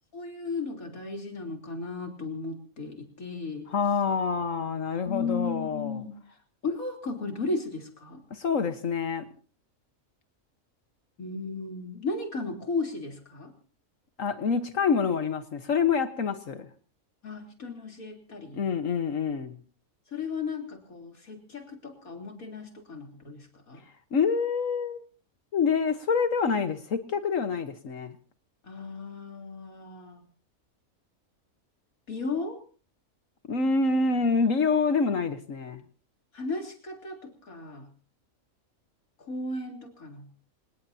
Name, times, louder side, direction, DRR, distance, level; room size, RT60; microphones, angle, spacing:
voice 1, 0.1-3.7 5.1-6.4 6.6-8.2 11.2-13.5 17.2-18.6 20.1-23.8 28.6-30.2 32.1-32.6 36.3-37.9 39.2-40.3, left 3 dB, 85° left, 3 dB, 3.9 m, -35 dB
voice 2, 3.7-6.0 8.3-9.2 14.2-16.7 18.6-19.6 24.1-25.0 25.5-28.1 33.5-35.8, left 5 dB, 70° left, 9 dB, 1.5 m, -26 dB
26.5 x 19.0 x 2.8 m, 0.38 s
omnidirectional pair, 1.4 m